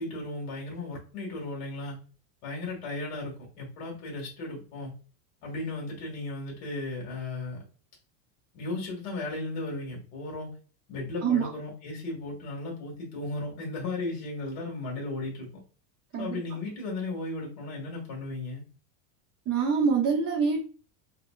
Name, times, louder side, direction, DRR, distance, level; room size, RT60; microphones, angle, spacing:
voice 1, 0.0-2.0 2.4-4.9 5.4-7.6 8.5-10.5 10.9-15.5 16.2-18.6, left 2 dB, 60° left, -2 dB, 1.6 m, -35 dB
voice 2, 19.5-20.6, right 5 dB, 30° right, -4 dB, 0.7 m, -25 dB
4.2 x 2.1 x 2.3 m, 0.38 s
supercardioid pair, 145°, 49 cm